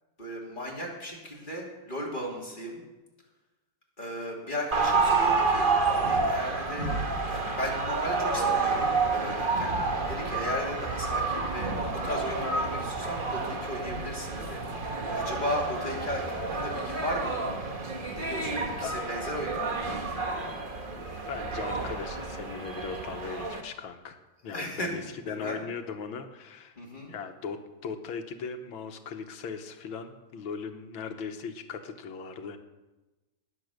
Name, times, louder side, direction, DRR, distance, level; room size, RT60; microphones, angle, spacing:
voice 1, 0.2-2.8 4.0-6.9 7.3-9.7 10.1-14.8 15.1-17.4 18.1-19.9 24.5-25.0 25.3-25.6 26.8-27.1, equal, 25° left, -2 dB, 3.1 m, -36 dB
sound 1, 4.7-23.6, right 3 dB, 30° right, 1.2 m, -29 dB
voice 2, 21.3-26.8 27.1-32.6, left 5 dB, 90° left, 6 dB, 1.9 m, -38 dB
19.5 x 7.7 x 6.5 m, 1.1 s
omnidirectional pair, 2.1 m